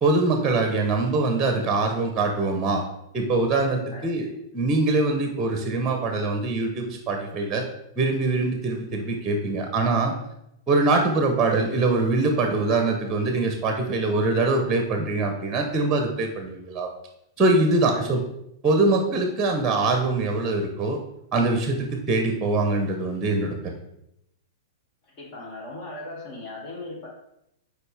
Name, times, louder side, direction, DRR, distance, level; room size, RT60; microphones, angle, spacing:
voice 1, 0.0-2.8 3.1-4.3 4.5-7.6 8.0-10.1 10.7-16.9 17.4-18.2 18.6-21.0 21.3-23.6, right 3 dB, 15° right, 4 dB, 1.0 m, -23 dB
voice 2, 25.0-27.1, left 2 dB, 40° left, -2 dB, 2.3 m, -38 dB
6.7 x 4.7 x 3.5 m, 0.80 s
hypercardioid pair, 125°, 2 cm